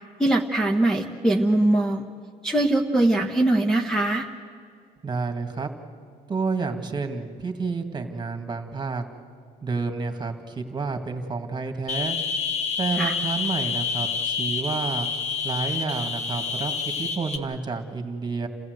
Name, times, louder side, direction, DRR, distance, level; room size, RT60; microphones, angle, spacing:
voice 1, 0.2-2.0 2.4-4.3 13.0-13.1, right 1 dB, 5° left, 2 dB, 1.2 m, -21 dB
voice 2, 5.0-5.7 6.3-9.1 9.6-12.2 12.8-15.1 15.4-18.5, right 4 dB, 25° right, 6 dB, 2.2 m, -30 dB
sound 1, 11.9-17.4, left 5 dB, 40° left, 1.9 m, -28 dB
29.0 x 15.5 x 8.1 m, 2.3 s
cardioid pair, 110°, 17 cm